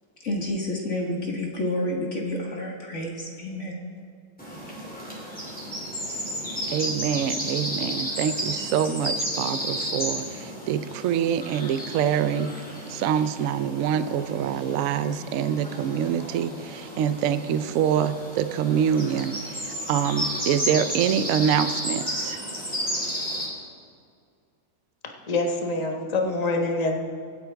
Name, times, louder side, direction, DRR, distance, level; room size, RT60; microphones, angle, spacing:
voice 1, 0.2-3.8, left 1 dB, 45° left, 0 dB, 1.6 m, -29 dB
sound 1, 4.4-23.5, equal, 5° left, 2.6 m, -33 dB
voice 2, 6.7-12.5 12.9-22.4, right 8 dB, 75° right, 12 dB, 0.7 m, -25 dB
voice 3, 25.3-27.0, left 2 dB, 25° left, 2 dB, 1.1 m, -25 dB
24.5 x 8.5 x 3.5 m, 2.2 s
omnidirectional pair, 2.0 m